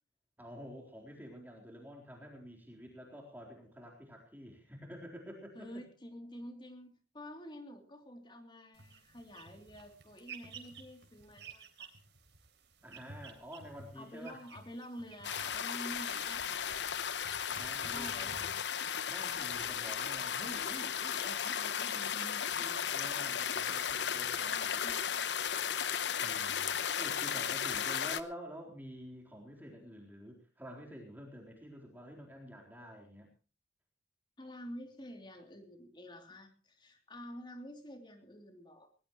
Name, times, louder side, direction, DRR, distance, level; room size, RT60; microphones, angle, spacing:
voice 1, 0.4-5.8 12.8-14.4 17.5-18.3 19.1-24.7 26.2-33.3, equal, 10° right, 0 dB, 3.9 m, -49 dB
voice 2, 5.5-11.9 13.9-16.7 17.8-18.7 24.1-25.4 34.4-38.9, equal, 25° left, 5 dB, 3.1 m, -49 dB
sound 1, 8.7-19.1, right 5 dB, 75° right, 3.6 m, -54 dB
sound 2, 15.2-28.2, left 8 dB, 85° left, 0.9 m, -35 dB
19.5 x 19.5 x 3.1 m, 0.35 s
head